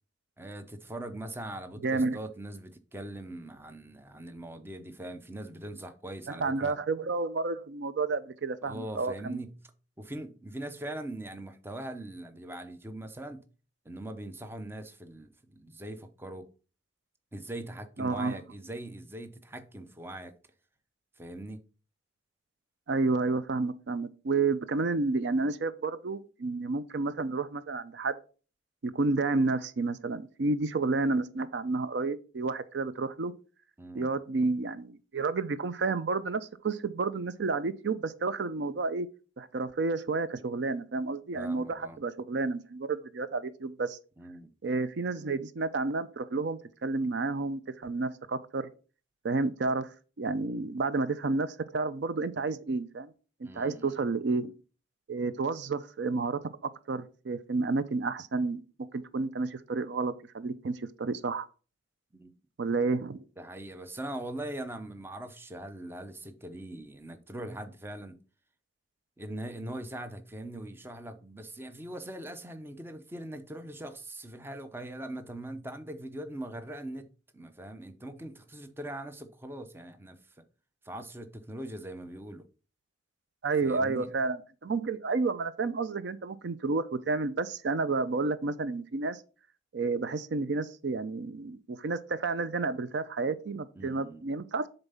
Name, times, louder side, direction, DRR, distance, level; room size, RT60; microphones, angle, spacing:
voice 1, 0.4-6.8 8.6-9.6 10.0-13.4 13.8-16.5 17.3-20.4 21.2-21.6 33.8-34.1 41.4-42.0 44.2-44.5 53.4-53.9 62.1-62.3 63.4-68.2 69.2-80.4 80.8-82.5 83.6-84.1 93.8-94.2, right 1 dB, 10° right, 0.6 m, -41 dB
voice 2, 1.8-2.2 6.3-9.4 18.0-18.4 22.9-28.1 28.8-33.3 33.9-39.1 39.4-44.0 44.6-48.7 49.2-49.9 50.2-53.1 53.5-54.6 55.1-56.4 56.9-58.6 58.9-61.5 62.6-63.2 83.4-89.2 89.7-94.7, right 3 dB, 60° right, 0.5 m, -30 dB
7.1 x 4.0 x 5.5 m
head